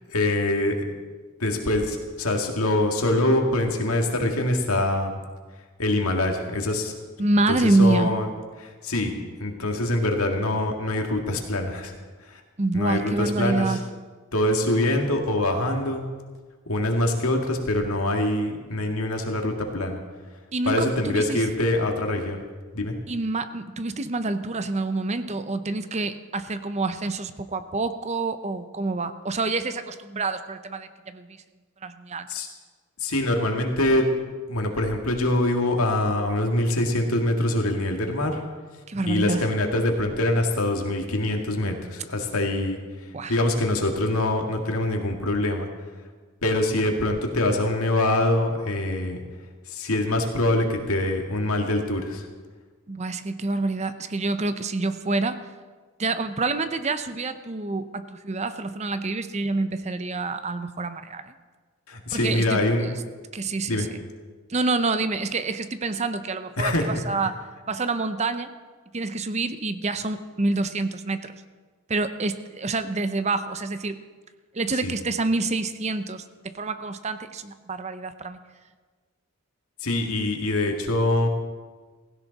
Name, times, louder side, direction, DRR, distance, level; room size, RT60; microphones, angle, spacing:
voice 1, 0.1-0.9 1.4-5.2 5.8-6.9 7.5-8.3 8.6-9.1 9.4-11.9 12.2-12.4 12.7-13.8 14.3-16.0 16.7-20.0 20.7-22.4 22.7-22.9 32.3-32.5 33.0-34.1 34.5-38.4 39.1-42.8 43.3-45.7 46.4-49.2 49.7-52.3 61.9-62.9 63.7-63.9 66.6-66.9 74.8-74.9 79.8-81.3, left 1 dB, 80° left, 3 dB, 2.1 m, -24 dB
voice 2, 7.2-8.1 12.6-13.8 20.5-21.4 23.1-31.4 31.8-32.3 38.9-39.4 43.1-43.3 52.9-55.5 56.0-61.3 62.1-62.9 63.3-63.9 64.5-67.4 67.7-68.5 68.9-71.4 71.9-74.0 74.5-78.4, right 3 dB, 30° right, 11 dB, 0.7 m, -27 dB
16.5 x 16.0 x 4.1 m, 1.4 s
head